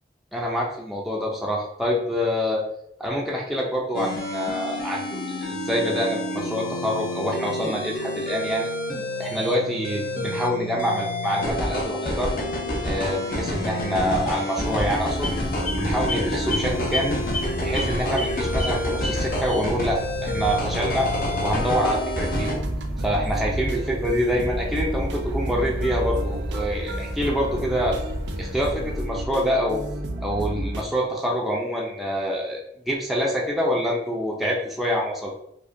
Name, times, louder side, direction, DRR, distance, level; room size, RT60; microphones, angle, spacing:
voice 1, 0.3-2.6 3.0-8.7 9.2-12.3 12.8-15.3 15.7-17.2 17.6-21.1 21.4-22.5 23.0-28.0 28.4-29.8 30.2-35.4, equal, ahead, -3 dB, 0.4 m, -26 dB
sound 1, 3.9-22.6, left 1 dB, 50° left, 0.7 m, -28 dB
sound 2, 14.6-29.1, equal, 35° left, 1.2 m, -32 dB
sound 3, 22.3-30.8, right 1 dB, 85° right, 0.5 m, -31 dB
4.7 x 2.2 x 2.5 m, 0.78 s
head